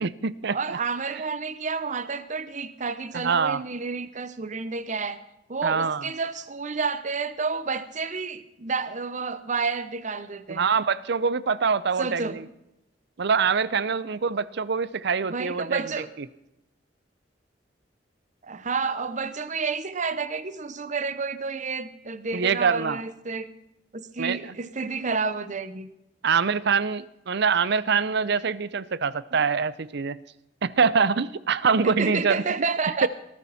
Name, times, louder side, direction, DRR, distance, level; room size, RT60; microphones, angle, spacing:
voice 1, 0.0-0.8 3.1-3.6 5.6-6.1 10.5-12.4 13.2-16.3 22.3-23.0 24.2-24.4 26.2-30.2 30.6-32.4 33.0-33.1, right 5 dB, 65° right, 18 dB, 0.6 m, -24 dB
voice 2, 0.5-5.2 5.5-10.6 12.0-12.4 15.2-16.1 18.4-23.5 23.9-25.9 31.8-33.1, right 4 dB, 40° right, 13 dB, 0.9 m, -30 dB
19.0 x 14.0 x 4.2 m, 0.87 s
head